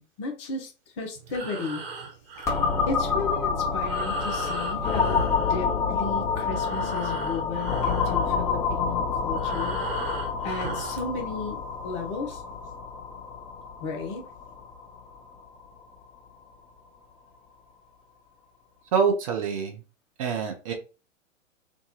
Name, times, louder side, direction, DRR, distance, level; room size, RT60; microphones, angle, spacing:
voice 1, 0.0-1.8 2.5-9.8 10.0-12.4 13.8-14.3, left 4 dB, 25° left, 3 dB, 0.5 m, -34 dB
Breathing, 1.1-6.1 6.4-11.1, right 3 dB, 50° right, 1.1 m, -38 dB
sound 1, 2.5-16.0, left 5 dB, 5° left, 0.9 m, -28 dB
voice 2, 18.9-19.8 20.2-20.7, right 6 dB, 30° right, 1 dB, 0.4 m, -25 dB
2.9 x 2.2 x 2.8 m, 0.32 s
figure-of-eight pair, 110°, 38 cm